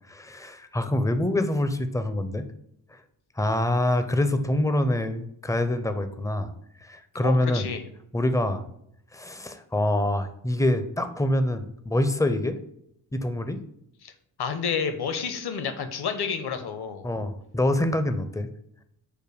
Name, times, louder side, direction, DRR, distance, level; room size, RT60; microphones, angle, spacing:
voice 1, 0.1-2.5 3.4-6.5 6.8-7.6 8.1-8.6 9.1-12.6 13.1-13.6 17.0-18.5, left 1 dB, 5° left, 9 dB, 0.4 m, -25 dB
voice 2, 7.1-7.8 14.0-14.1 14.4-17.1, left 6 dB, 55° left, 8 dB, 0.7 m, -30 dB
5.1 x 2.2 x 4.8 m, 0.73 s
supercardioid pair, 40°, 48 cm